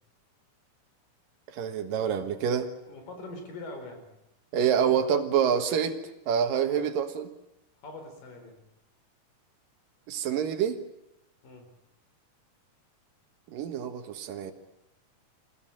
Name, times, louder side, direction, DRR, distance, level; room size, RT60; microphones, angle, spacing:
voice 1, 1.5-2.7 4.5-6.0 6.3-7.3 10.1-10.8 13.5-14.5, right 8 dB, 80° right, 8 dB, 3.2 m, -27 dB
voice 2, 2.9-4.1 7.8-8.6 11.4-11.7, left 2 dB, 80° left, 5 dB, 5.9 m, -42 dB
26.5 x 16.0 x 9.0 m, 0.89 s
omnidirectional pair, 3.9 m